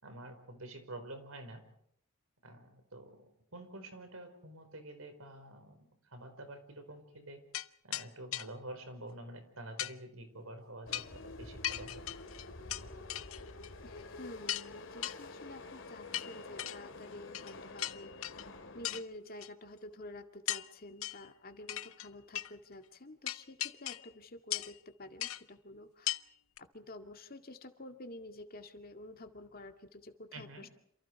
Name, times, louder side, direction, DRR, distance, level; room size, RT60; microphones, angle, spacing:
voice 1, 0.0-1.6 2.4-7.4 7.8-12.0 30.3-30.6, right 1 dB, 90° right, 7 dB, 5.0 m, -48 dB
sound 1, 7.5-7.7 7.9-8.1 8.3-8.5 9.8-9.9 10.9-11.2 11.6-12.8 13.1-13.7 14.0-14.1 14.5-14.7 15.0-15.2 16.1-16.8 17.3-17.5 17.8-18.5 18.8-19.0 19.4-19.5 20.5-20.7 21.0-21.3 21.7-22.1 22.3-22.5 23.3-24.1 24.5-24.8 25.2-25.4 26.1-26.2 26.6-26.7, left 13 dB, 85° left, 0.8 m, -37 dB
sound 2, 10.9-19.0, left 2 dB, 65° left, 2.7 m, -48 dB
voice 2, 13.8-18.3 18.7-26.1 26.6-30.7, left 1 dB, 45° left, 6 dB, 2.2 m, -49 dB
28.5 x 28.0 x 4.7 m, 0.73 s
head